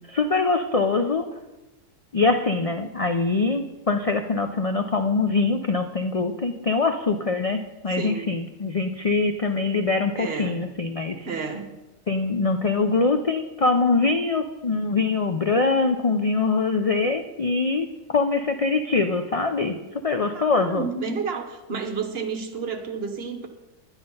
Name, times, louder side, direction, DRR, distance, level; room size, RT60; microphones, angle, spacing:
voice 1, 0.1-1.3 2.1-11.2 12.1-19.8 20.0-20.9, left 3 dB, 55° left, 6 dB, 0.4 m, -23 dB
voice 2, 7.9-8.3 10.2-10.7 11.2-11.8 20.3-23.5, right 5 dB, 50° right, 6 dB, 1.1 m, -31 dB
11.0 x 9.6 x 5.4 m, 1.0 s
omnidirectional pair, 1.4 m